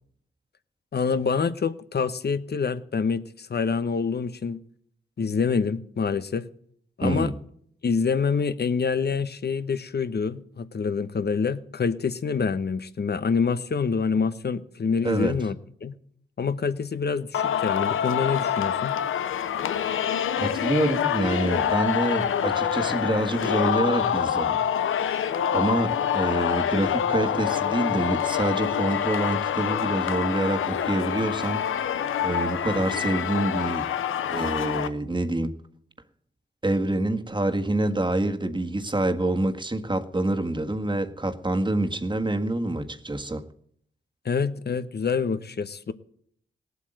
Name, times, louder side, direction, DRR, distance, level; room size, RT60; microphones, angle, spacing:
voice 1, 0.9-4.6 5.2-6.5 7.0-7.3 7.8-15.6 15.8-15.9 16.4-19.0 44.2-45.9, left 5 dB, 55° left, 1.0 m, -26 dB
voice 2, 7.0-7.3 15.0-15.4 20.4-24.6 25.5-31.6 32.2-33.9 34.3-35.5 36.6-43.4, right 2 dB, 25° right, 1.7 m, -26 dB
Singing, 17.3-34.9, left 9 dB, 90° left, 0.7 m, -26 dB
18.0 x 8.2 x 7.8 m
cardioid pair, 50°, 20 cm